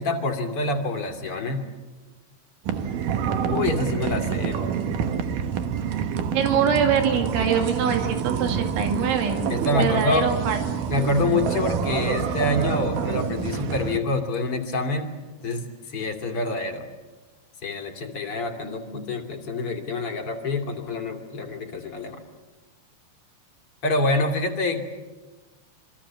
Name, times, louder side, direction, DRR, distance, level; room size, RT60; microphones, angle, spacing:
voice 1, 0.0-1.7 3.5-4.6 9.5-10.2 10.9-15.1 15.4-16.9 17.6-22.2 23.8-24.8, left 2 dB, 35° left, 3 dB, 2.8 m, -26 dB
sound 1, 2.7-14.0, right 7 dB, 70° right, 2.1 m, -27 dB
voice 2, 6.3-9.4 9.8-10.6 18.6-19.1, right 7 dB, 85° right, 4 dB, 4.6 m, -24 dB
27.0 x 25.0 x 7.5 m, 1.2 s
omnidirectional pair, 5.2 m